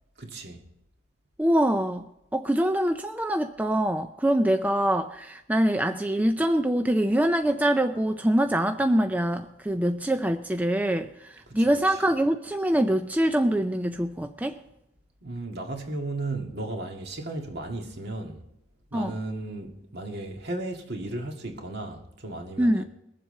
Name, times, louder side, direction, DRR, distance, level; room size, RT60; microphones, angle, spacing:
voice 1, 0.2-0.6 11.5-12.0 15.2-18.4 18.9-22.9, right 2 dB, 55° right, 1.9 m, -35 dB
voice 2, 1.4-14.6 18.9-19.2 22.6-22.8, right 1 dB, 10° right, 0.4 m, -24 dB
22.0 x 7.6 x 4.4 m
head